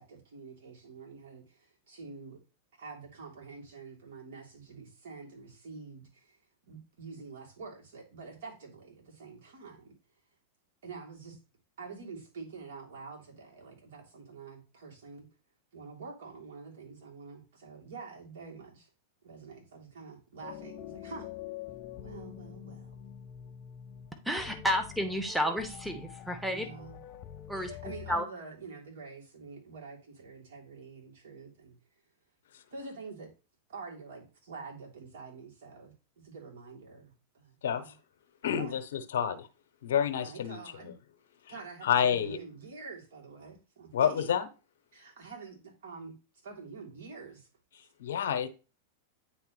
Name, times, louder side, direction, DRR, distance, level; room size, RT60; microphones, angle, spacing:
voice 1, 0.0-2.4 2.8-6.4 6.7-9.9 10.8-11.4 11.8-15.3 15.7-18.9 19.2-21.3 22.0-22.9 26.5-27.0 27.5-31.8 32.7-33.3 33.7-38.0 38.5-38.8 40.2-40.9 41.5-44.3 44.9-46.1 46.4-47.5, right 4 dB, 70° right, 3.2 m, -47 dB
sound 1, 20.4-28.2, left 10 dB, 45° left, 0.6 m, -45 dB
voice 2, 24.2-26.7 27.5-28.2, equal, 5° right, 1.0 m, -31 dB
voice 3, 38.4-38.8 39.1-39.5 39.8-40.6 41.8-42.4 43.9-44.4 48.0-48.5, left 8 dB, 75° left, 0.8 m, -28 dB
9.6 x 3.4 x 3.2 m
hypercardioid pair, 105°, 0 cm